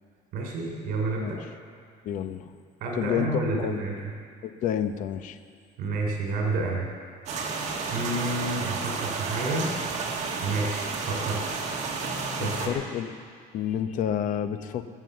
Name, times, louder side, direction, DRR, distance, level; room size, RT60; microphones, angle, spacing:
voice 1, 0.3-1.4 2.8-4.1 5.8-6.9 7.9-9.7 10.4-11.7 12.4-12.9, right 3 dB, 65° right, 0 dB, 3.3 m, -30 dB
voice 2, 2.0-2.5 2.9-3.3 3.5-3.9 4.4-5.4 12.4-13.2 13.5-14.8, left 9 dB, 55° left, 10 dB, 0.9 m, -29 dB
sound 1, 7.3-12.7, right 4 dB, 45° right, 1.9 m, -31 dB
20.0 x 7.7 x 7.8 m, 2.2 s
cardioid pair, 155°, 16 cm